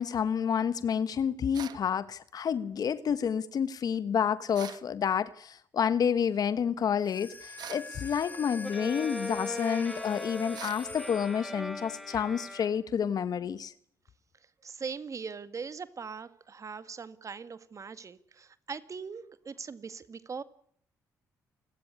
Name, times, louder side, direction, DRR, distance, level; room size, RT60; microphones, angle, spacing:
voice 1, 0.0-13.7, left 7 dB, 60° left, 1.3 m, -29 dB
sound 1, 1.5-1.9 4.5-4.9 7.6-7.9 10.5-10.9, right 10 dB, 65° right, 1.1 m, -43 dB
sound 2, 7.0-11.8, left 3 dB, 25° left, 3.2 m, -44 dB
Bowed string instrument, 8.6-13.1, left 1 dB, ahead, 3.3 m, -40 dB
voice 2, 14.6-20.4, right 5 dB, 45° right, 1.9 m, -41 dB
29.5 x 13.5 x 9.9 m
supercardioid pair, 55°, 7 cm